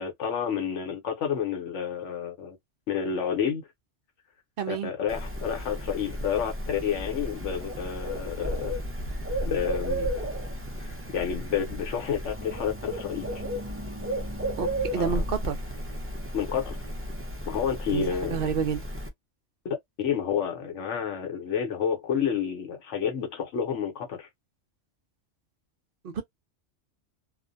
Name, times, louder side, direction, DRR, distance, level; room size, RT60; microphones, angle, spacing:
voice 1, 0.0-2.6 2.9-3.6 4.7-8.7 9.4-10.1 11.1-13.3 15.0-15.2 16.3-16.8 17.4-18.4 19.6-24.3, left 7 dB, 80° left, 1.1 m, -30 dB
voice 2, 4.6-4.9 14.6-14.7 14.9-15.6 17.9-18.8 26.0-26.2, right 7 dB, 60° right, 0.7 m, -29 dB
Bird, 5.1-19.1, equal, 20° right, 0.4 m, -33 dB
2.4 x 2.1 x 2.5 m
omnidirectional pair, 1.2 m